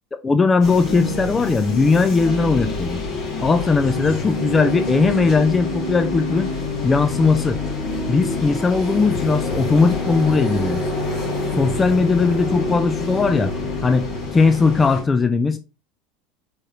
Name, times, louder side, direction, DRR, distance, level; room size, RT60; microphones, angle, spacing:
voice 1, 0.2-3.0 3.4-6.5 6.8-7.6 8.1-10.8 11.6-13.5 13.8-14.1 14.3-15.6, left 4 dB, 20° left, 0.4 m, -18 dB
Organ / Church bell, 0.5-14.7, left 4 dB, 60° left, 1.0 m, -29 dB
sound 1, 0.6-15.0, equal, 45° left, 2.4 m, -29 dB
4.6 x 3.5 x 2.7 m
hypercardioid pair, 75°, 0 cm